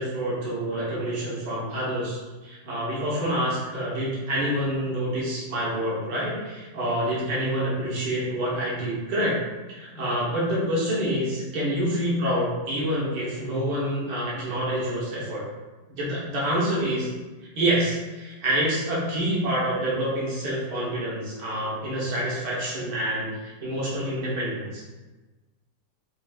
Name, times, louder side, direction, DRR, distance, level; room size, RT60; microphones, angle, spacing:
voice 1, 0.0-9.4 9.7-15.4 15.9-17.1 17.6-24.8, right 1 dB, 65° right, -7 dB, 1.8 m, -27 dB
5.9 x 2.6 x 2.4 m, 1.2 s
omnidirectional pair, 2.0 m